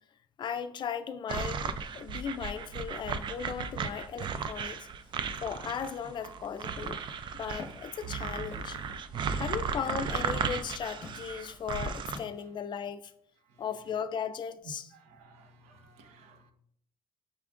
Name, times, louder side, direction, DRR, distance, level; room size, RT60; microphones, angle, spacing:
voice 1, 0.4-4.9 5.4-7.0 7.3-8.8 9.3-13.1 13.6-14.9, left 7 dB, 45° left, 0.4 m, -37 dB
sound 1, 1.3-12.2, right 6 dB, 45° right, 0.3 m, -35 dB
Walk footsteps, 7.6-7.9 8.5-8.9 9.9-10.2 11.0-11.3 12.1-12.6, left 2 dB, 25° left, 0.8 m, -45 dB
voice 2, 15.1-16.5, right 2 dB, 80° right, 0.7 m, -57 dB
5.8 x 2.4 x 3.5 m
cardioid pair, 95°, 11 cm